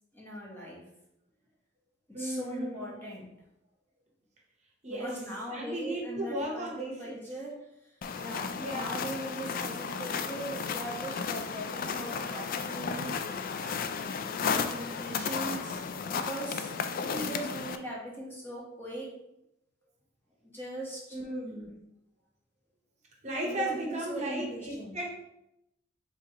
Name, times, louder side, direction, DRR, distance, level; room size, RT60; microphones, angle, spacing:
voice 1, 0.1-0.8 2.2-3.3 4.9-7.5 8.2-13.1 13.6-13.8 14.3-15.8 16.1-16.7 17.0-19.1 20.4-21.2 23.5-25.0, right 1 dB, 10° left, -4 dB, 1.0 m, -40 dB
voice 2, 2.1-3.1 4.8-5.2 5.5-7.3 8.5-9.0 17.0-17.5 21.1-21.8 23.2-25.1, right 1 dB, 35° right, -1 dB, 0.9 m, -36 dB
sound 1, 8.0-17.8, left 6 dB, 45° left, 0.3 m, -34 dB
4.7 x 3.5 x 2.9 m, 0.84 s
head